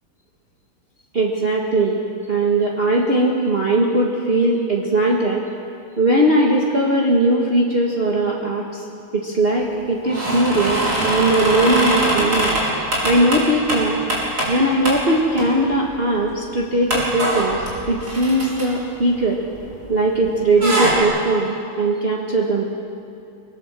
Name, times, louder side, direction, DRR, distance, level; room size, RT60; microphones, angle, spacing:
voice 1, 1.1-2.0 2.3-5.4 6.0-8.9 9.1-12.5 13.0-14.0 14.5-19.4 19.9-22.6, right 1 dB, 30° right, -3 dB, 1.8 m, -19 dB
sound 1, 10.0-14.6 14.9-15.0 15.4-15.9 16.2-16.3 16.9-19.9 20.2-21.0, right 1 dB, 50° right, 5.2 m, -22 dB
23.5 x 19.5 x 7.6 m, 2.6 s
omnidirectional pair, 2.2 m